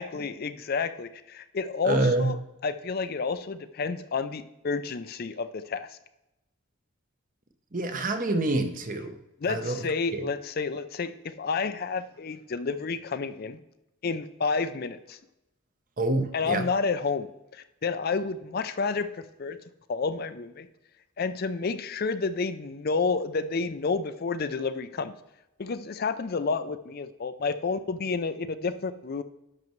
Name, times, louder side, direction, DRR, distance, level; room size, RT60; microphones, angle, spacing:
voice 1, 0.0-2.4 2.6-6.0 9.4-13.6 14.0-15.2 16.3-19.6 19.9-20.7 21.2-25.1 25.6-29.2, left 4 dB, 45° left, 0.4 m, -30 dB
voice 2, 1.8-2.3 7.7-9.2 9.5-9.8 10.1-10.2 16.0-16.7, right 2 dB, 40° right, 0.8 m, -26 dB
10.5 x 6.5 x 3.1 m
head